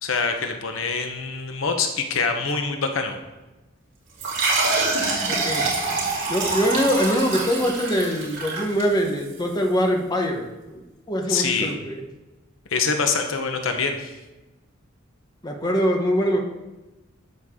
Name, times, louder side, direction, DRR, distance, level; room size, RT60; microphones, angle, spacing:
voice 1, 0.0-3.2 11.3-11.7 12.7-14.1, left 5 dB, 85° left, 5 dB, 1.0 m, -25 dB
sound 1, 4.2-9.3, right 3 dB, 65° right, 2.9 m, -25 dB
voice 2, 5.3-5.7 6.3-10.4 10.7-12.0 15.4-16.4, equal, 20° left, 2 dB, 1.1 m, -23 dB
12.0 x 6.6 x 3.7 m, 1.1 s
head